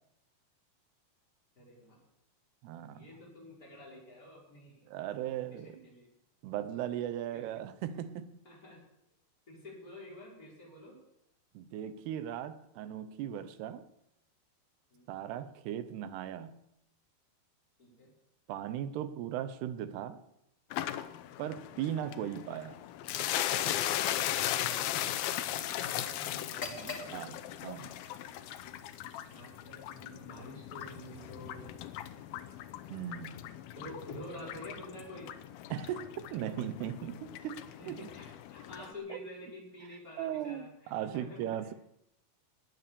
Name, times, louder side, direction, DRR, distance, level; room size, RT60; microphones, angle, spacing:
voice 1, 1.6-2.0 2.9-4.8 5.2-6.1 7.3-7.4 8.4-8.8 9.5-11.0 14.9-15.1 17.8-18.1 21.6-21.7 24.5-25.2 25.6-27.2 29.3-31.7 33.8-35.3 37.8-41.4, left 1 dB, 20° left, -4 dB, 5.9 m, -49 dB
voice 2, 2.6-3.1 4.9-5.8 6.4-8.4 11.5-13.9 15.1-16.6 18.5-20.2 21.4-22.8 27.1-28.0 32.9-33.5 35.7-37.6 37.9-38.0 39.1-39.2 40.2-41.7, right 10 dB, 85° right, 12 dB, 3.0 m, -38 dB
sound 1, 20.7-38.9, left 12 dB, 80° left, 2.5 m, -38 dB
sound 2, 25.5-37.2, right 2 dB, 60° right, 8.6 m, -65 dB
sound 3, 26.4-34.2, left 4 dB, 55° left, 0.8 m, -50 dB
19.0 x 9.4 x 7.0 m, 0.81 s
omnidirectional pair, 4.6 m